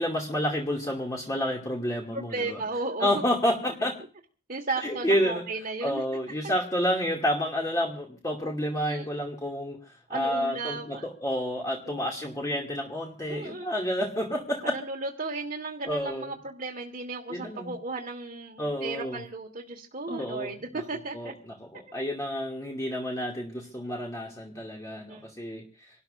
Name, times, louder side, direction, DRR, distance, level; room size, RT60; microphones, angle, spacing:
voice 1, 0.0-2.6 3.0-3.9 4.8-5.4 5.8-14.7 15.8-16.3 17.3-17.7 18.6-19.2 20.1-20.8 21.1-25.6, equal, 20° left, -1 dB, 2.5 m, -30 dB
voice 2, 2.1-3.2 4.5-6.0 8.8-9.0 10.1-11.1 11.9-12.2 13.3-13.7 14.6-21.3 24.9-25.3, right 3 dB, 45° right, 0 dB, 1.8 m, -35 dB
27.5 x 12.5 x 2.6 m, 0.38 s
head